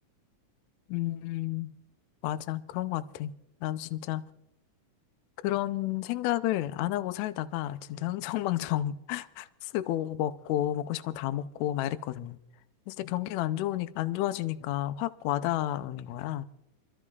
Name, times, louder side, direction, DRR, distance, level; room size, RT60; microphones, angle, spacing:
voice 1, 0.9-1.7 2.2-3.3 3.6-4.2 5.4-12.4 12.9-16.5, left 14 dB, 80° left, 1.7 m, -31 dB
28.5 x 12.5 x 2.4 m
omnidirectional pair, 3.6 m